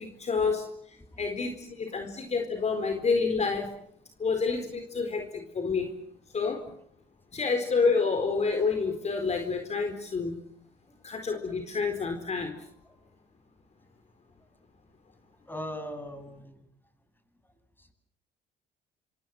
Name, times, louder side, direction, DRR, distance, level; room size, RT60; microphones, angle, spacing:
voice 1, 0.0-3.7 4.2-5.9 6.3-6.6 7.3-10.3 11.0-12.6, left 4 dB, 40° left, 6 dB, 4.3 m, -28 dB
voice 2, 15.5-16.7 17.4-17.9, equal, 10° left, 8 dB, 7.8 m, -41 dB
26.5 x 25.5 x 7.8 m, 0.70 s
cardioid pair, 85°, 18 cm